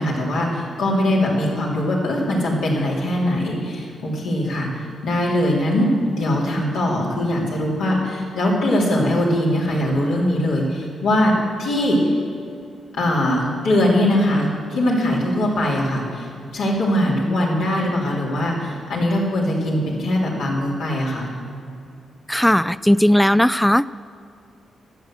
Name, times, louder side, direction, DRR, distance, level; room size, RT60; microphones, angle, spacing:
voice 1, 0.0-11.3 11.6-12.0 12.9-16.3 16.5-21.3, left 1 dB, 85° left, -5 dB, 3.4 m, -21 dB
voice 2, 22.3-23.9, equal, 5° left, 16 dB, 0.3 m, -16 dB
13.0 x 8.0 x 7.5 m, 2.5 s
supercardioid pair, 50°, 0 cm